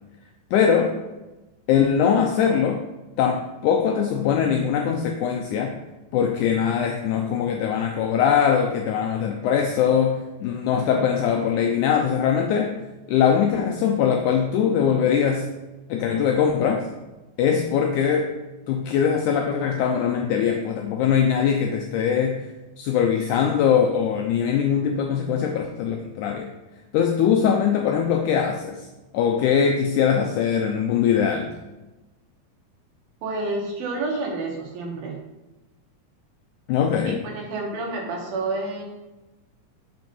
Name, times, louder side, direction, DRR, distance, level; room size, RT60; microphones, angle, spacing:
voice 1, 0.5-1.0 1.7-2.8 3.2-5.7 6.1-12.8 13.1-15.5 15.9-16.9 17.4-18.3 18.7-22.5 22.8-26.5 26.9-28.8 29.1-31.5 36.7-37.2, left 7 dB, 85° left, 3 dB, 1.7 m, -21 dB
voice 2, 33.2-35.1 37.1-38.8, right 3 dB, 80° right, 0 dB, 3.2 m, -29 dB
6.4 x 5.3 x 5.4 m, 1.1 s
omnidirectional pair, 4.1 m